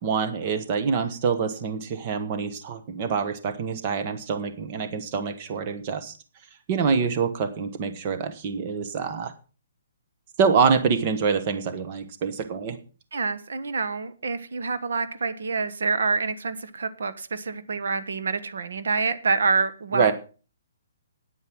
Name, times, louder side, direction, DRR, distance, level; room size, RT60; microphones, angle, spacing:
voice 1, 0.0-6.1 6.7-9.3 10.4-12.8 19.9-20.1, right 5 dB, 30° right, 1.2 m, -25 dB
voice 2, 13.1-20.1, right 4 dB, 75° right, 1.4 m, -27 dB
9.5 x 9.5 x 6.1 m
hypercardioid pair, 170°, 0 cm